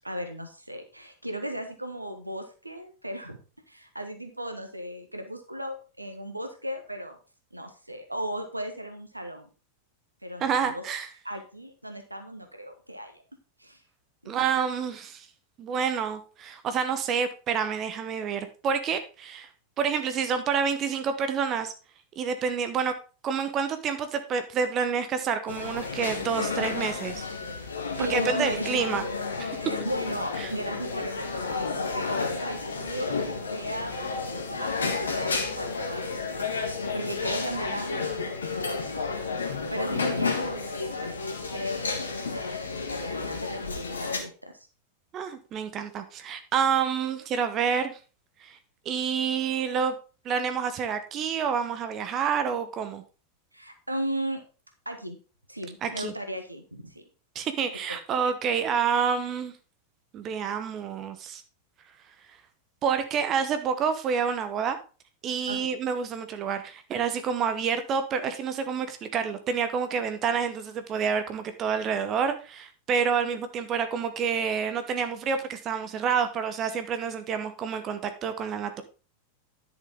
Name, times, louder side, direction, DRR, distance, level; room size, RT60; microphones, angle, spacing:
voice 1, 0.0-3.4 3.7-7.2 7.5-9.5 10.2-10.8 11.2-13.2 13.6-13.8 14.2-14.5 27.9-28.7 29.6-34.0 34.6-38.2 38.5-41.2 41.5-44.7 53.5-54.4 54.8-55.2 55.5-57.0 57.9-58.0 65.5-65.7, right 1 dB, 85° right, 6 dB, 1.4 m, -36 dB
voice 2, 10.4-11.1 14.3-15.3 15.6-19.5 19.8-21.7 22.2-22.9 23.2-27.2 28.0-29.0 29.4-29.6 30.4-30.5 45.1-48.0 48.4-48.6 48.8-49.9 50.2-53.0 55.8-56.1 57.3-59.5 60.1-61.4 62.8-64.8 65.2-78.8, right 6 dB, 30° right, 9 dB, 1.0 m, -28 dB
sound 1, 25.5-44.2, left 4 dB, 70° left, 1.6 m, -31 dB
10.5 x 6.7 x 3.7 m, 0.34 s
figure-of-eight pair, 90°, 0 cm